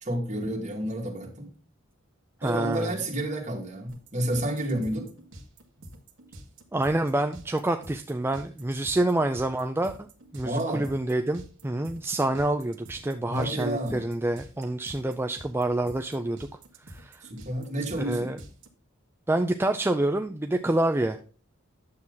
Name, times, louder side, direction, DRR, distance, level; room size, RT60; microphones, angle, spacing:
voice 1, 0.0-1.5 2.4-5.1 10.4-10.9 13.3-14.0 17.3-18.3, right 1 dB, 35° right, 0 dB, 2.4 m, -30 dB
voice 2, 2.4-2.9 6.7-9.9 10.3-16.4 16.9-17.2 18.0-18.4 19.3-21.2, right 1 dB, 10° right, 6 dB, 0.4 m, -27 dB
sound 1, 3.9-18.7, right 1 dB, 65° right, 1.6 m, -47 dB
9.8 x 7.2 x 3.9 m, 0.39 s
head